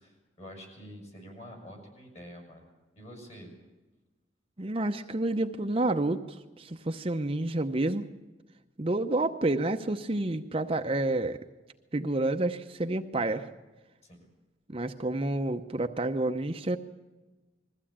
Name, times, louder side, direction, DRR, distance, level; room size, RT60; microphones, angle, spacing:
voice 1, 0.0-2.6 3.0-3.5 14.0-14.3, equal, 40° left, 2 dB, 6.2 m, -47 dB
voice 2, 4.6-8.1 8.8-11.4 11.9-13.5 14.7-16.8, right 2 dB, 30° right, 6 dB, 0.8 m, -29 dB
21.5 x 15.0 x 8.7 m, 1.2 s
head